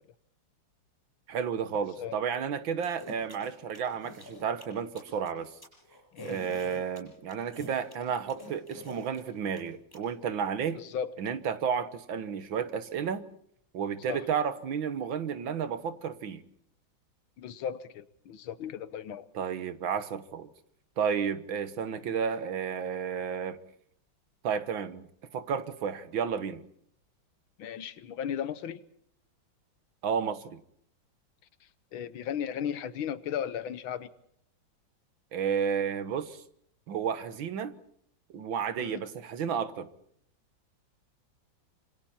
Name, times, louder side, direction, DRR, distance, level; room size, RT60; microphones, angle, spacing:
voice 1, 1.3-5.5 6.2-10.8 11.2-13.3 13.7-16.4 19.4-20.5 21.0-23.6 24.4-25.1 25.3-26.6 30.0-30.6 35.3-36.4 36.9-37.7 38.3-39.9, right 7 dB, 70° right, 2.0 m, -32 dB
sound 1, 2.8-10.0, left 1 dB, 10° left, 7.2 m, -47 dB
voice 2, 6.1-6.4 10.7-11.1 14.1-14.3 17.4-19.3 27.6-28.8 31.9-34.1 38.8-39.0, left 8 dB, 80° left, 1.8 m, -36 dB
26.5 x 26.5 x 4.3 m
omnidirectional pair, 2.2 m